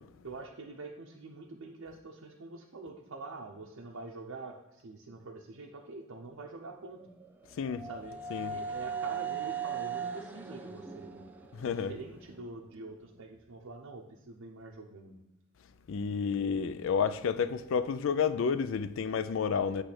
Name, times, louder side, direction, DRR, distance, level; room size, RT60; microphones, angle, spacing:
voice 1, 0.2-7.0 7.8-8.2 8.5-11.2 11.6-15.2, right 3 dB, 85° right, 0.7 m, -45 dB
sound 1, 6.8-12.7, right 6 dB, 10° right, 0.5 m, -39 dB
voice 2, 7.6-7.9 8.3-8.5 11.5-11.9 15.9-19.8, left 6 dB, 65° left, 0.4 m, -30 dB
8.3 x 3.2 x 6.0 m
head